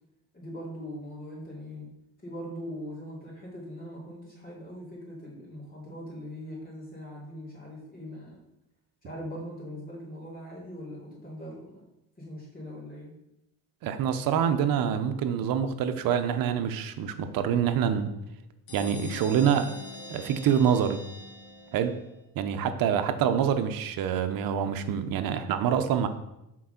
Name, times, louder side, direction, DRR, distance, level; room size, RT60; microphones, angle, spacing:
voice 1, 0.3-1.9 2.2-8.4 9.0-11.8 12.2-13.1, equal, 25° left, -5 dB, 3.1 m, -41 dB
voice 2, 13.8-18.1 18.7-19.7 20.1-21.0 21.7-21.9 22.4-26.1, right 8 dB, 70° right, 9 dB, 0.8 m, -26 dB
sound 1, 18.7-22.2, left 1 dB, 85° left, 2.4 m, -42 dB
6.2 x 4.6 x 5.7 m, 0.89 s
cardioid pair, 135°, 35 cm